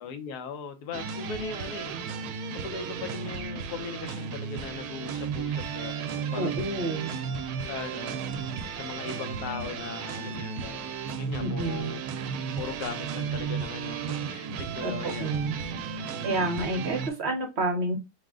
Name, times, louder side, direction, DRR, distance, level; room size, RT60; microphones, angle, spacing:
voice 1, 0.0-2.0 2.5-6.7 7.7-8.2 8.8-10.9 11.2-12.0 12.6-15.3 16.1-16.4, left 5 dB, 75° left, 1.2 m, -39 dB
sound 1, 0.9-17.1, right 6 dB, 70° right, 1.0 m, -34 dB
voice 2, 6.3-7.1 11.4-11.9 14.8-14.9 15.2-15.6 16.0-18.0, right 2 dB, 50° right, 0.9 m, -29 dB
4.8 x 2.1 x 3.6 m
omnidirectional pair, 1.7 m